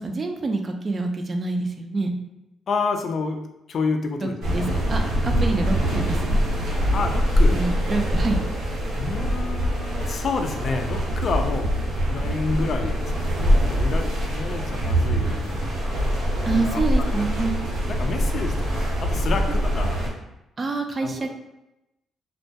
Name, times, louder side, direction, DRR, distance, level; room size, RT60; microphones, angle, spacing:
voice 1, 0.0-2.1 4.2-6.8 7.5-8.4 14.6-14.7 16.5-17.5 20.6-21.4, right 3 dB, 35° right, 4 dB, 0.3 m, -27 dB
voice 2, 2.7-3.4 3.7-4.7 6.9-7.6 9.0-11.7 12.1-15.7 16.4-17.5 17.9-20.0 21.0-21.3, left 4 dB, 55° left, 5 dB, 0.3 m, -29 dB
sound 1, 4.4-20.1, equal, 85° right, 0.9 m, -23 dB
2.2 x 2.2 x 2.7 m, 0.92 s
cardioid pair, 90°, 0 cm